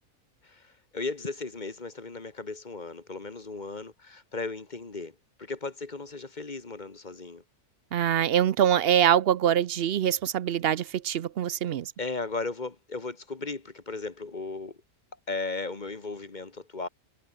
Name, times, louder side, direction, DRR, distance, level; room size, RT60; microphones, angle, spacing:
voice 1, 0.4-7.4 12.0-14.8 15.3-16.9, left 3 dB, 35° left, 1.8 m, -36 dB
voice 2, 7.9-11.9, right 10 dB, 60° right, 0.7 m, -24 dB
omnidirectional pair, 1.5 m